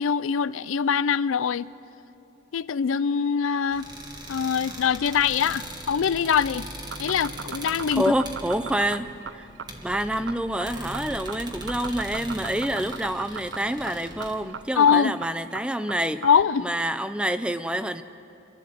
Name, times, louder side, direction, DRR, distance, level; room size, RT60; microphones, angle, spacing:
voice 1, 0.0-1.7 2.5-3.9 4.3-6.7 7.0-8.0 14.8-15.1 16.2-16.7, left 7 dB, 80° left, 17 dB, 0.4 m, -23 dB
sound 1, 3.7-14.4, right 1 dB, 20° right, 1.5 m, -40 dB
sound 2, 6.8-16.4, right 6 dB, 65° right, 0.6 m, -37 dB
voice 2, 7.9-9.5 9.8-16.3 16.6-18.0, right 1 dB, 5° right, 11 dB, 0.4 m, -27 dB
27.5 x 12.0 x 7.8 m, 2.8 s
head